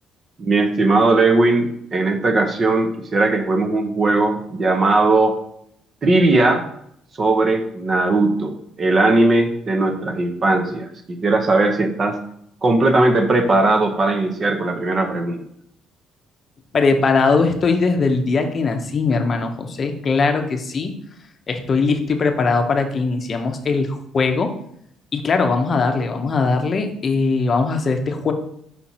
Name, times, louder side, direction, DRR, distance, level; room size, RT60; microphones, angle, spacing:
voice 1, 0.4-5.4 6.0-6.7 7.2-12.2 12.6-15.4, right 2 dB, 30° right, 5 dB, 0.7 m, -18 dB
voice 2, 16.7-20.9 21.5-24.5 25.1-28.3, left 4 dB, 30° left, 5 dB, 0.7 m, -20 dB
5.8 x 4.3 x 4.2 m, 0.72 s
cardioid pair, 150°, 0 cm